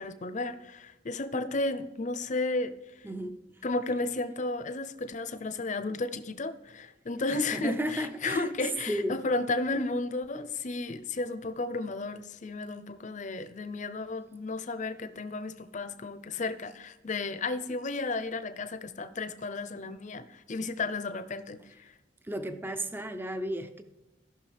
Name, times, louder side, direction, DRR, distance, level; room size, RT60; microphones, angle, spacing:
voice 1, 0.0-2.7 3.6-21.9, left 3 dB, 40° left, 11 dB, 0.6 m, -33 dB
voice 2, 3.0-3.4 7.3-8.5 8.9-9.2 22.2-23.8, equal, 10° right, 8 dB, 0.4 m, -34 dB
16.5 x 5.9 x 3.4 m, 1.0 s
head